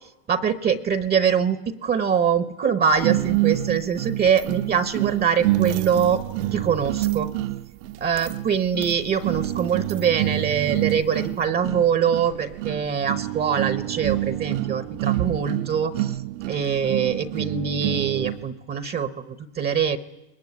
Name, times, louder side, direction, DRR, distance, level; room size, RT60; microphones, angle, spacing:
voice 1, 0.3-6.2 6.5-7.3 8.0-16.2 16.5-20.0, right 7 dB, 20° right, 13 dB, 0.8 m, -23 dB
sound 1, 3.0-18.5, right 16 dB, 55° right, 0.9 m, -27 dB
22.0 x 21.0 x 9.6 m, 1.0 s
supercardioid pair, 145°, 45 cm